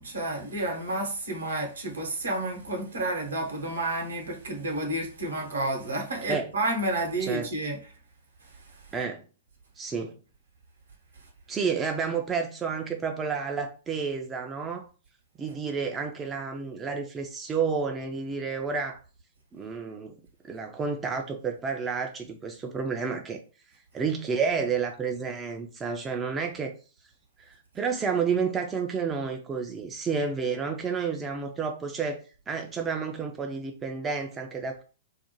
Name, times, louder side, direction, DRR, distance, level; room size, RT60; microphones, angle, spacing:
voice 1, 0.0-7.8, right 2 dB, 70° right, 0.9 m, -30 dB
voice 2, 7.2-7.5 8.9-9.2 9.8-10.1 11.5-14.9 15.4-19.0 19.5-20.2 20.5-23.4 23.9-26.7 27.4-32.2 32.5-34.8, right 5 dB, 15° right, 0.3 m, -30 dB
2.4 x 2.1 x 2.9 m
figure-of-eight pair, 105°, 0 cm